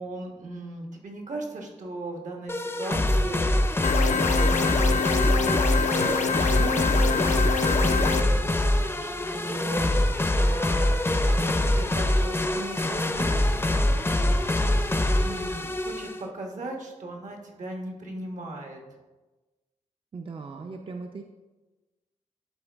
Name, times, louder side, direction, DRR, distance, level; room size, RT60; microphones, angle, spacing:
voice 1, 0.0-7.2 7.8-10.9 11.2-13.9 14.8-18.8, right 2 dB, 80° right, 1 dB, 1.2 m, -38 dB
sound 1, 2.5-16.2, left 1 dB, 20° left, 0.5 m, -24 dB
sound 2, 3.8-8.2, left 6 dB, 75° left, 0.4 m, -26 dB
sound 3, 7.7-16.1, right 1 dB, 65° right, 1.9 m, -50 dB
voice 2, 20.1-21.2, right 4 dB, 45° right, 4 dB, 0.4 m, -38 dB
11.0 x 4.0 x 3.4 m, 1.2 s
wide cardioid pair, 110°, 13 cm